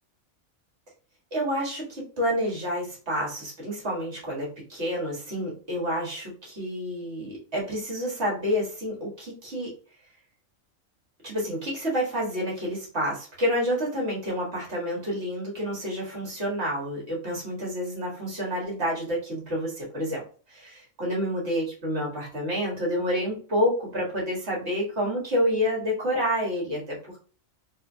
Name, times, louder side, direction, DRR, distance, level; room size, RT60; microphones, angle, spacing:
voice 1, 1.3-9.7 11.2-20.2 20.5-27.2, equal, 55° right, -3 dB, 1.8 m, -29 dB
4.2 x 2.7 x 2.6 m, 0.39 s
omnidirectional pair, 1.4 m